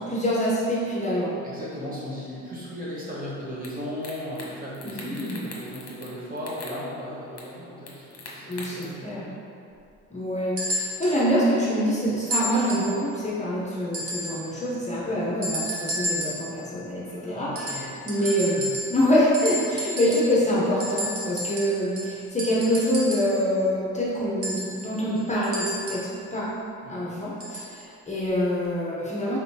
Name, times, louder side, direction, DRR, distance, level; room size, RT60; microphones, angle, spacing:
voice 1, 0.0-1.3 4.8-5.4 8.5-9.2 10.1-18.6 18.9-26.5 26.9-29.4, equal, 25° left, -7 dB, 0.8 m, -25 dB
voice 2, 1.4-9.4 14.4-14.7 15.1-15.3 17.0-18.8 26.8-27.1, left 1 dB, 30° right, -8 dB, 1.3 m, -37 dB
sound 1, 3.6-3.7 4.0-4.5 4.7-6.1 6.4-6.8 7.4-7.5 7.9-8.8, left 4 dB, 50° left, 0.9 m, -41 dB
sound 2, 10.6-11.2 12.3-13.0 13.9-14.5 15.4-16.5 17.5-19.1 19.3-20.4 20.8-23.4 24.4-26.1 27.4-27.7 28.6-28.7, equal, 50° right, 1.0 m, -32 dB
4.1 x 3.9 x 2.8 m, 2.6 s
cardioid pair, 90°, 30 cm